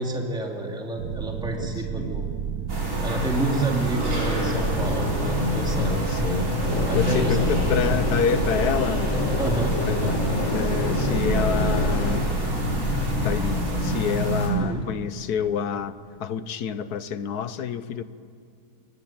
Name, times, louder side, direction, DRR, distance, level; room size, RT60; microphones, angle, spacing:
voice 1, 0.0-2.3 3.0-6.0 6.9-7.4 9.4-9.7 14.6-14.8, right 2 dB, 5° right, 1 dB, 2.6 m, -29 dB
sound 1, 1.0-13.3, right 7 dB, 85° right, 1.5 m, -31 dB
voice 2, 1.6-2.1 5.9-6.5 6.9-9.1 9.9-10.2 10.5-12.2 13.2-18.0, left 7 dB, 75° left, 13 dB, 1.4 m, -28 dB
sound 2, 2.7-14.5, left 1 dB, 50° right, 6.0 m, -26 dB
sound 3, 6.6-12.2, left 2 dB, 50° left, 2.6 m, -30 dB
24.0 x 20.5 x 8.9 m, 2.2 s
omnidirectional pair, 1.7 m